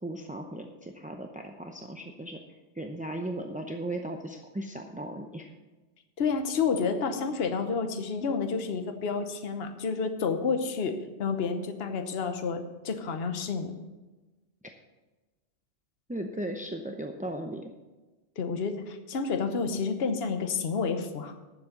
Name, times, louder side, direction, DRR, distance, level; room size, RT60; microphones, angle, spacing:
voice 1, 0.0-2.4 2.7-5.5 16.1-17.7, right 1 dB, 10° right, 3 dB, 0.4 m, -37 dB
voice 2, 6.2-13.7 18.4-21.3, left 5 dB, 55° left, 7 dB, 1.2 m, -30 dB
11.0 x 7.4 x 6.5 m, 1.2 s
omnidirectional pair, 1.3 m